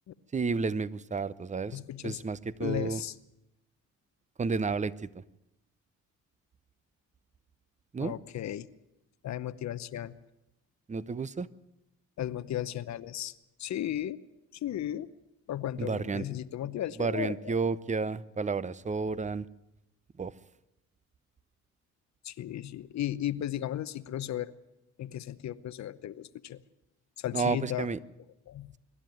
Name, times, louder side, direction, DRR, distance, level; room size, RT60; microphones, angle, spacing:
voice 1, 0.3-3.0 4.4-5.1 7.9-8.1 10.9-11.5 15.8-16.2 17.0-19.5 20.2-20.3 27.3-28.0, right 4 dB, 25° right, 18 dB, 0.7 m, -31 dB
voice 2, 1.7-2.2 2.6-3.1 8.0-8.7 9.2-10.1 12.2-13.3 13.6-14.2 14.5-15.1 15.5-17.6 22.2-24.5 25.0-26.6 27.2-27.9 28.5-28.7, left 12 dB, 65° left, 15 dB, 0.9 m, -35 dB
24.5 x 11.5 x 9.3 m, 0.88 s
cardioid pair, 90°, 30 cm